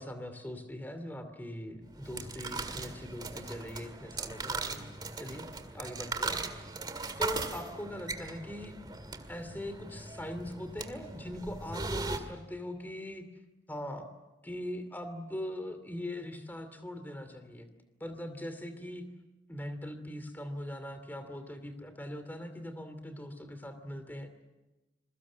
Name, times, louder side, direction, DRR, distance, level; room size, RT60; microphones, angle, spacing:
voice 1, 0.0-4.8 5.2-5.5 5.7-6.4 7.2-8.7 9.3-13.3 13.7-14.1 14.4-17.7 18.0-19.1 19.5-24.4, left 1 dB, 10° left, 9 dB, 2.7 m, -41 dB
sound 1, 1.9-12.2, right 3 dB, 20° right, 2.0 m, -39 dB
27.0 x 22.5 x 7.4 m, 1.1 s
head